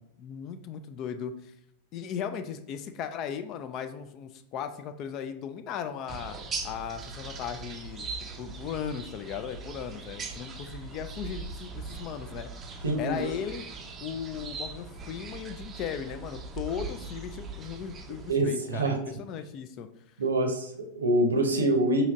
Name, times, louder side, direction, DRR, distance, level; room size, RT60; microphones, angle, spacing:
voice 1, 0.2-1.5 1.9-6.4 6.6-8.1 8.4-12.5 12.8-13.6 14.0-19.9, left 8 dB, 35° left, 9 dB, 0.4 m, -37 dB
sound 1, 6.1-18.3, right 4 dB, 25° right, 0.5 m, -40 dB
voice 2, 12.8-13.3 18.3-19.0 20.2-22.0, right 1 dB, 70° right, 3 dB, 0.7 m, -25 dB
5.0 x 2.8 x 2.6 m, 0.76 s
figure-of-eight pair, 90°, 0 cm